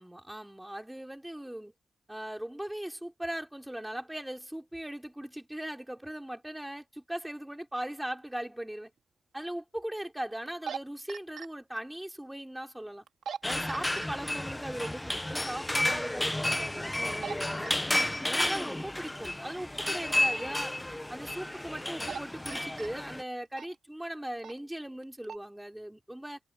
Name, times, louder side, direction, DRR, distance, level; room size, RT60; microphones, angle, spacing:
voice 1, 0.0-1.7 2.1-8.9 9.3-13.0 13.4-17.9 18.3-26.4, right 1 dB, 5° right, 3.8 m, -39 dB
sound 1, 8.4-8.5 10.5-10.8 11.1-11.5 13.1-13.4 13.7-14.1 14.8-14.9 15.9-16.1 17.0-17.3 17.7-18.0 20.3-20.5 21.8-22.2 22.5-22.9 23.5-23.7 24.4-24.6 25.0-25.4, right 7 dB, 85° right, 2.7 m, -39 dB
sound 2, 13.4-23.2, left 1 dB, 10° left, 0.9 m, -32 dB
wide cardioid pair, 125°, 0 cm